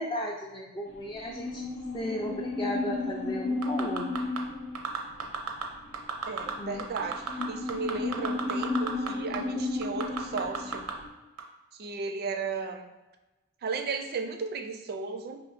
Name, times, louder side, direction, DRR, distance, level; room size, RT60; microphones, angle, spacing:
voice 1, 0.0-1.6 1.9-4.1 6.6-6.9, left 1 dB, 20° left, -2 dB, 0.4 m, -35 dB
sound 1, 0.9-11.1, left 3 dB, 75° left, 0.8 m, -34 dB
sound 2, 3.6-4.4 4.7-5.6 5.9-6.5 6.8-9.1 9.3-9.4 9.8-10.9 11.4-11.5, right 6 dB, 90° right, 0.6 m, -33 dB
voice 2, 6.3-10.9 11.8-12.9 13.6-15.4, right 4 dB, 45° right, 5 dB, 0.4 m, -35 dB
4.9 x 3.0 x 2.5 m, 1.1 s
head